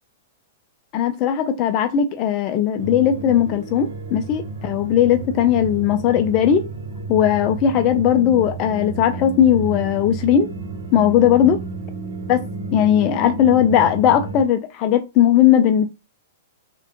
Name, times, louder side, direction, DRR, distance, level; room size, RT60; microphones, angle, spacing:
voice 1, 0.9-6.6 7.1-10.5 10.9-11.6 12.3-12.4 12.7-15.9, left 10 dB, 40° left, 0.4 m, -18 dB
sound 1, 2.8-14.4, right 3 dB, 70° right, 0.8 m, -32 dB
3.5 x 2.2 x 2.8 m
hypercardioid pair, 130°, 0 cm